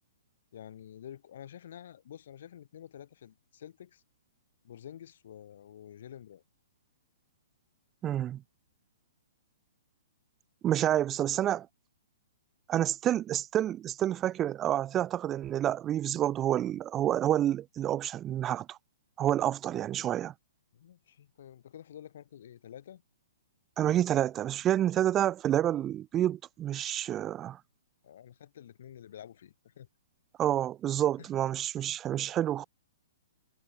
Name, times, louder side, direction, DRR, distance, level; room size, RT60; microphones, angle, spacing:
voice 1, 0.5-4.0 4.6-6.4 20.7-23.0 28.0-29.9 31.2-31.3, left 10 dB, 60° left, 3.7 m, -49 dB
voice 2, 8.0-8.4 10.6-11.7 12.7-18.8 19.2-20.3 23.8-27.6 30.4-32.6, right 11 dB, 20° right, 0.6 m, -28 dB
hypercardioid pair, 150°, 0 cm